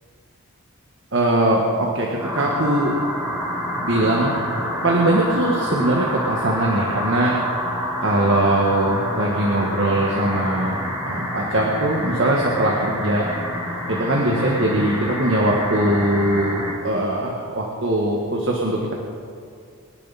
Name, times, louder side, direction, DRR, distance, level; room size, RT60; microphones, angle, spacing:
voice 1, 1.1-2.9 3.7-7.4 8.0-13.3 13.9-18.9, right 1 dB, 55° right, -1 dB, 1.7 m, -21 dB
sound 1, 2.2-16.7, equal, 15° right, 3.3 m, -28 dB
25.0 x 11.0 x 4.3 m, 2.3 s
head